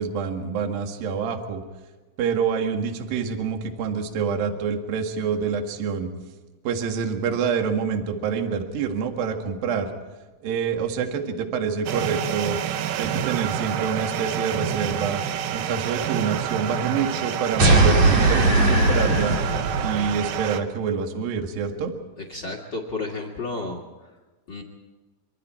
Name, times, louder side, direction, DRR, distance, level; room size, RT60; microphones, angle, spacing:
voice 1, 0.0-1.6 2.2-6.1 6.6-9.9 10.4-12.6 13.0-15.2 15.5-19.4 19.8-21.9, right 6 dB, 55° right, 4 dB, 3.0 m, -27 dB
sound 1, 11.9-20.6, right 9 dB, 80° right, 3.5 m, -28 dB
sound 2, 17.6-20.2, right 2 dB, 40° right, 3.0 m, -19 dB
voice 2, 22.3-24.1 24.5-24.6, left 3 dB, 90° left, 3 dB, 0.9 m, -32 dB
25.5 x 25.0 x 4.4 m, 1.2 s
omnidirectional pair, 5.6 m